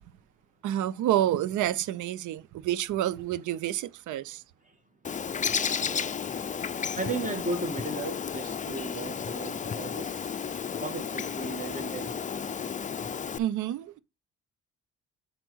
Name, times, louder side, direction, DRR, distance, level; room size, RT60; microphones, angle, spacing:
voice 1, 0.6-4.4 13.4-14.0, right 12 dB, 80° right, 0.6 m, -29 dB
Bird, 5.0-13.4, left 7 dB, 25° left, 0.4 m, -33 dB
voice 2, 6.9-10.3 10.8-12.1, right 3 dB, 25° right, 1.8 m, -35 dB
5.2 x 4.5 x 6.1 m
cardioid pair, 90°, 30 cm